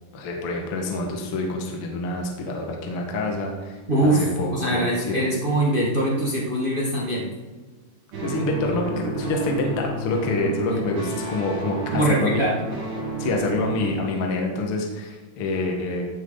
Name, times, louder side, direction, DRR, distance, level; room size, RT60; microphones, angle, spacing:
voice 1, 0.1-5.2 8.2-11.8 12.1-12.4 13.2-16.1, left 2 dB, 50° left, 1 dB, 1.8 m, -27 dB
voice 2, 3.9-7.3 11.9-12.6, right 1 dB, 30° right, -4 dB, 0.9 m, -22 dB
sound 1, 8.1-13.9, right 2 dB, 80° right, 4.8 m, -31 dB
14.5 x 7.3 x 4.0 m, 1.3 s
omnidirectional pair, 4.2 m